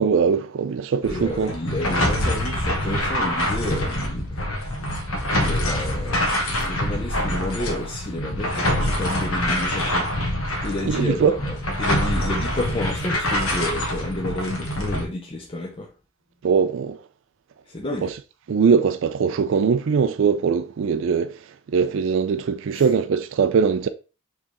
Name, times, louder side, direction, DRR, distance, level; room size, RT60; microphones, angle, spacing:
voice 1, 0.0-1.5 10.9-11.3 16.4-17.0 18.0-18.1 18.5-21.4 21.7-23.9, right 6 dB, 65° right, 0.3 m, -21 dB
sound 1, 1.0-15.0, left 1 dB, 80° left, 1.1 m, -25 dB
voice 2, 1.1-4.4 5.3-10.1 10.6-15.9 17.6-18.1 22.7-22.9, left 1 dB, 25° left, 0.5 m, -30 dB
4.5 x 3.3 x 2.9 m
head